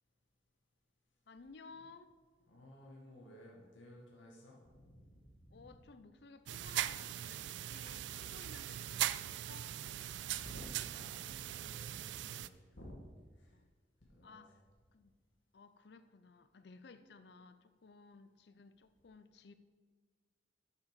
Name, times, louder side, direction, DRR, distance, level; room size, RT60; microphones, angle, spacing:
voice 1, 1.3-2.1 5.5-9.7 13.5-13.7 14.2-14.6 14.9-15.2 15.5-19.5, left 4 dB, 60° left, 0.5 m, -57 dB
voice 2, 2.5-5.8 10.1-13.0 13.3-13.6 14.1-14.5, left 1 dB, 90° left, 1.6 m, -55 dB
sound 1, 6.5-12.5, right 12 dB, 70° right, 0.3 m, -40 dB
7.7 x 6.1 x 6.5 m
head